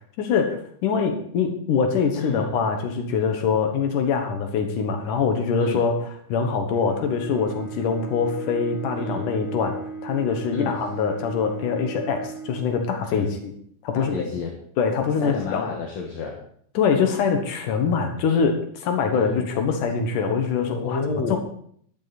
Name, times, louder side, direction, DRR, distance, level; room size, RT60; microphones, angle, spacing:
voice 1, 0.2-5.9 6.3-13.5 13.8-14.3 14.8-15.7 16.8-21.0 21.3-21.4, left 6 dB, 80° left, 5 dB, 2.8 m, -24 dB
voice 2, 2.2-2.5 5.6-5.8 9.0-9.2 10.5-10.7 13.1-13.3 13.9-14.5 15.2-16.4 19.1-19.5 20.8-21.4, left 4 dB, 60° left, 1 dB, 2.6 m, -30 dB
Bowed string instrument, 6.7-13.4, right 4 dB, 20° right, 3.4 m, -37 dB
12.5 x 11.5 x 4.1 m, 0.63 s
omnidirectional pair, 3.6 m